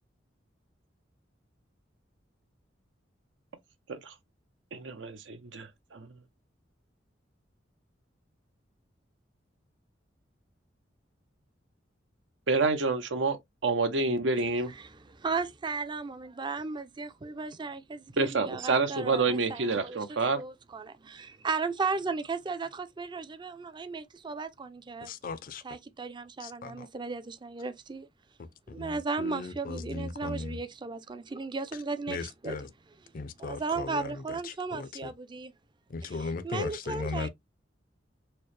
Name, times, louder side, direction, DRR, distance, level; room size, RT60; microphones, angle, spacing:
voice 1, 4.7-6.1 12.5-13.4 13.6-14.7 18.2-20.4, right 3 dB, 75° right, 0.7 m, -28 dB
voice 2, 14.4-20.1 20.4-25.1 25.6-28.1 28.7-32.6 33.4-35.5 36.2-37.3, right 4 dB, 25° right, 0.4 m, -35 dB
voice 3, 25.0-25.6 26.4-26.9 28.4-30.6 32.1-32.7 33.1-35.1 35.9-37.3, left 3 dB, 50° left, 0.4 m, -37 dB
4.3 x 2.1 x 3.1 m
head